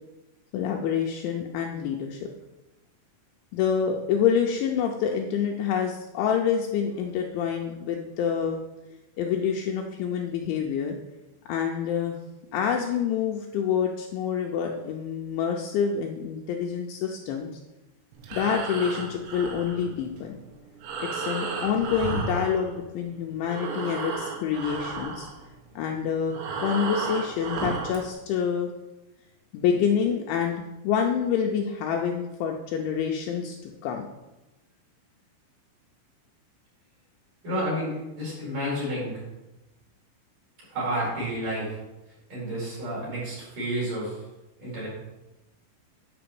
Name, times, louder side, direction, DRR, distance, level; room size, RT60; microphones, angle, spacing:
voice 1, 0.5-2.3 3.5-8.6 9.2-11.0 11.5-12.2 12.5-17.5 18.3-20.4 21.0-25.3 25.8-28.7 29.5-34.1, left 7 dB, 80° left, 1 dB, 2.8 m, -27 dB
Breathing, 18.1-23.1 23.4-28.1, right 4 dB, 80° right, 4.1 m, -33 dB
voice 2, 37.4-39.2 40.7-41.8 42.3-44.2 44.6-44.9, equal, 40° right, -6 dB, 5.8 m, -30 dB
9.9 x 5.8 x 7.0 m, 1.0 s
omnidirectional pair, 5.9 m